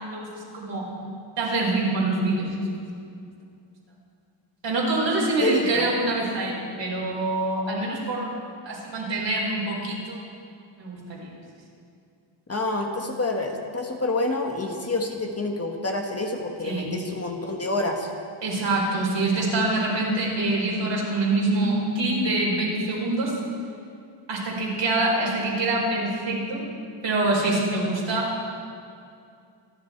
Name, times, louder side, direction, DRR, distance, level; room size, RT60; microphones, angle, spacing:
voice 1, 0.1-0.8 1.4-2.7 4.6-8.3 8.6-10.2 10.8-11.3 16.6-16.9 18.4-23.4 24.3-26.6 27.0-28.3, right 2 dB, 65° right, -4 dB, 5.2 m, -25 dB
voice 2, 5.4-5.8 12.5-18.1, left 2 dB, 30° left, 2 dB, 1.5 m, -27 dB
26.5 x 11.5 x 4.6 m, 2.4 s
wide cardioid pair, 140°, 47 cm